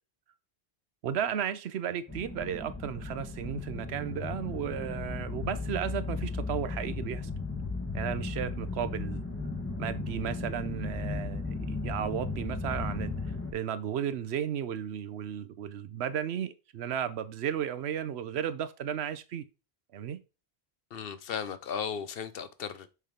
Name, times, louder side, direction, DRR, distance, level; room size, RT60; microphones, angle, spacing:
voice 1, 1.0-7.3 7.9-9.2 9.8-13.1 13.5-19.4 19.9-20.2, right 9 dB, 75° right, 0.9 m, -34 dB
sound 1, 2.1-13.5, left 3 dB, 15° left, 1.0 m, -36 dB
voice 2, 20.9-22.9, left 7 dB, 65° left, 0.8 m, -36 dB
6.5 x 3.4 x 5.1 m
omnidirectional pair, 1.1 m